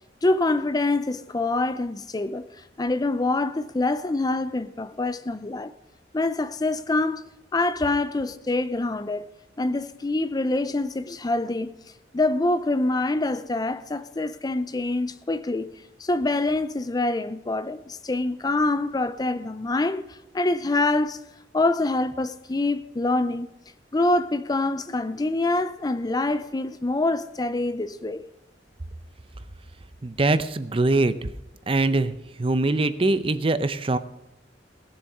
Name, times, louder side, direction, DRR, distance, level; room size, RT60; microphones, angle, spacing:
voice 1, 0.2-2.5 2.8-5.7 6.1-7.2 7.5-9.3 9.6-11.8 12.1-15.7 16.0-21.2 21.5-23.5 23.9-28.2, left 2 dB, 20° left, 0.5 m, -25 dB
voice 2, 30.0-31.3 31.7-34.0, right 2 dB, 30° right, 0.6 m, -23 dB
18.0 x 7.3 x 5.5 m
head